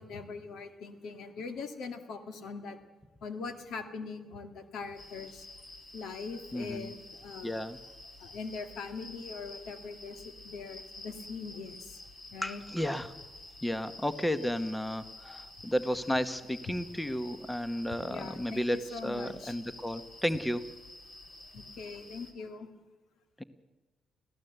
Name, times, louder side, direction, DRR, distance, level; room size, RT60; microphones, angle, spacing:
voice 1, 0.0-2.8 3.2-5.5 5.9-7.6 8.2-11.9 12.3-12.6 18.1-19.6 21.5-22.7, left 4 dB, 75° left, 8 dB, 2.0 m, -42 dB
sound 1, 5.0-22.3, left 2 dB, 40° left, 3.2 m, -50 dB
voice 2, 6.5-6.9 7.4-7.8 12.4-13.1 13.6-18.8 19.0-20.6, equal, 10° left, 12 dB, 1.0 m, -33 dB
25.0 x 16.0 x 8.0 m, 1.2 s
cardioid pair, 90°, 0 cm